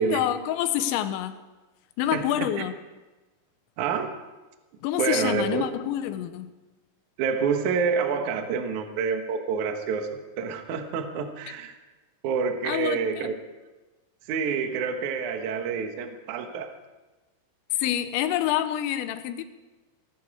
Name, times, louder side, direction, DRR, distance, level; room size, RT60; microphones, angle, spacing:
voice 1, 0.0-1.4 2.0-2.7 4.8-6.5 12.6-13.3 17.7-19.4, left 12 dB, 85° left, 11 dB, 3.2 m, -27 dB
voice 2, 2.1-2.5 3.8-4.1 5.0-5.6 7.2-11.7 12.2-13.3 14.3-16.7, right 6 dB, 65° right, 5 dB, 2.0 m, -27 dB
18.5 x 14.0 x 4.8 m, 1.2 s
omnidirectional pair, 5.2 m